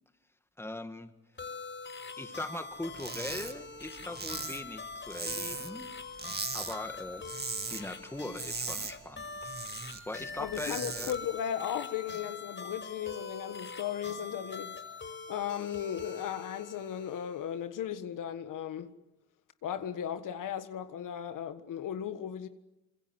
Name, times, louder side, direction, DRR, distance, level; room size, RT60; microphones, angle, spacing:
voice 1, 0.6-1.1 2.2-5.9 6.5-7.3 7.7-9.5 10.1-11.1, left 1 dB, 5° left, 2.0 m, -40 dB
sound 1, 1.4-17.5, left 4 dB, 35° left, 5.8 m, -44 dB
sound 2, 2.9-3.5 3.8-5.8 6.1-6.7 7.1-7.8 8.1-10.0 10.4-11.1, right 4 dB, 30° right, 2.3 m, -38 dB
voice 2, 10.4-14.8 15.3-18.9 19.6-22.5, left 9 dB, 70° left, 1.6 m, -36 dB
26.0 x 23.0 x 8.0 m
supercardioid pair, 70°, 33 cm